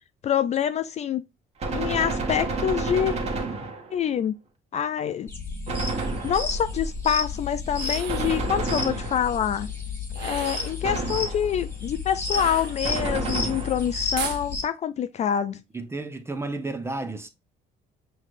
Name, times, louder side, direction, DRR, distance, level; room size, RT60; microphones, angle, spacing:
voice 1, 0.2-1.2 1.7-3.1 3.9-4.3 4.7-5.3 6.2-9.7 10.2-15.6, left 9 dB, 40° left, 0.4 m, -26 dB
Gunshot gunfire, 1.6-4.1 5.7-6.7 8.1-9.5 10.8-11.6 12.8-14.0, right 3 dB, 40° right, 1.3 m, -30 dB
sound 1, 5.3-14.6, left 4 dB, 15° left, 1.4 m, -32 dB
sound 2, 7.7-8.5 10.1-10.8 12.3-13.2 14.2-14.4, right 9 dB, 85° right, 0.7 m, -35 dB
voice 2, 15.7-17.3, right 2 dB, 15° right, 0.6 m, -32 dB
5.7 x 3.2 x 2.5 m
cardioid pair, 110°, 17 cm